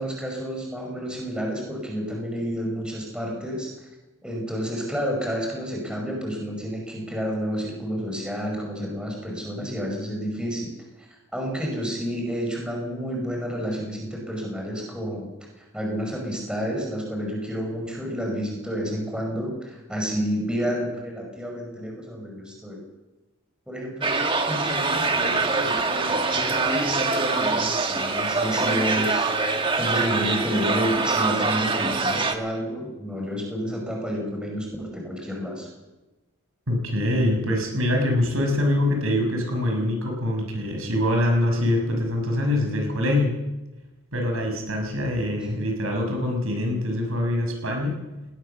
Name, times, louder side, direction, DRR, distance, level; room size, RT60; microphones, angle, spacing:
voice 1, 0.0-3.7 4.2-10.7 11.3-15.3 15.6-22.8 23.7-24.2 24.5-35.7, equal, 5° right, -1 dB, 5.6 m, -30 dB
sound 1, 24.0-32.3, right 3 dB, 25° right, 1.6 m, -24 dB
voice 2, 36.7-43.3 44.1-48.0, left 1 dB, 75° right, 2 dB, 6.6 m, -24 dB
20.5 x 18.5 x 6.8 m, 1.1 s
head